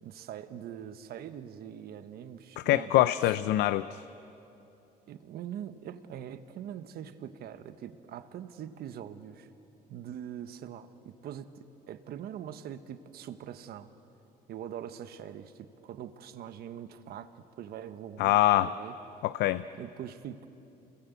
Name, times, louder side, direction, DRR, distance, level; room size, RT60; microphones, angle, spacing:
voice 1, 0.0-3.1 5.1-9.5 9.9-11.6 11.9-13.9 14.5-17.3 17.6-19.0 19.7-20.5, right 9 dB, 65° right, 10 dB, 1.3 m, -43 dB
voice 2, 2.6-4.0 18.2-18.7 19.2-19.6, left 15 dB, 85° left, 15 dB, 0.5 m, -24 dB
29.0 x 22.0 x 8.3 m, 2.9 s
cardioid pair, 110°, 17 cm